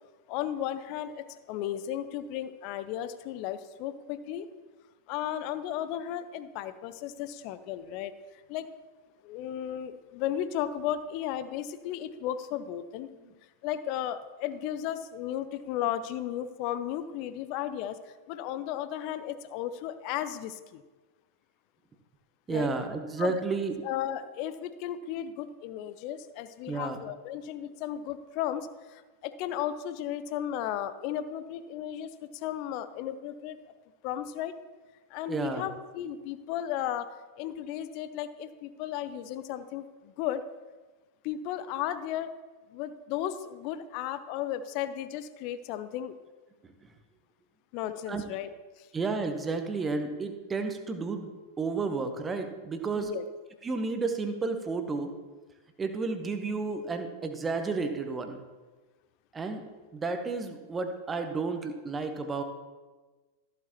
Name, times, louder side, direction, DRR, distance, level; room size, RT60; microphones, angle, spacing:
voice 1, 0.3-4.5 5.1-8.1 8.5-8.7 9.2-13.1 13.6-20.8 22.5-22.7 23.2-23.3 23.8-33.6 34.0-34.5 35.1-37.1 37.4-40.4 41.2-42.3 42.7-46.2 47.7-48.9 53.0-53.2, left 11 dB, 45° left, 13 dB, 0.5 m, -35 dB
voice 2, 22.5-23.8 26.7-27.0 35.3-35.7 46.6-46.9 48.1-48.2 48.9-51.3 51.6-53.1 53.6-55.1 55.8-58.4 59.3-59.6 59.9-62.4, right 4 dB, 15° right, 6 dB, 1.0 m, -32 dB
14.0 x 8.2 x 3.0 m, 1.3 s
figure-of-eight pair, 90°, 0 cm